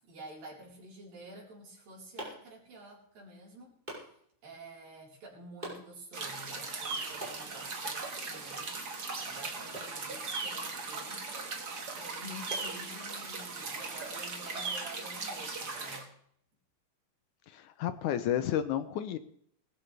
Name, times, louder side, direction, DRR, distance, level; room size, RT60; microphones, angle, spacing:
voice 1, 0.0-3.8 4.4-8.8 9.2-11.4 11.9-16.1, right 1 dB, 85° right, -4 dB, 6.1 m, -50 dB
sound 1, 1.5-13.4, right 1 dB, 10° right, 5.8 m, -50 dB
sound 2, 6.1-16.0, right 4 dB, 35° right, 1.8 m, -38 dB
voice 2, 17.5-19.2, left 10 dB, 75° left, 11 dB, 2.0 m, -31 dB
20.5 x 13.5 x 3.4 m, 0.66 s
omnidirectional pair, 3.9 m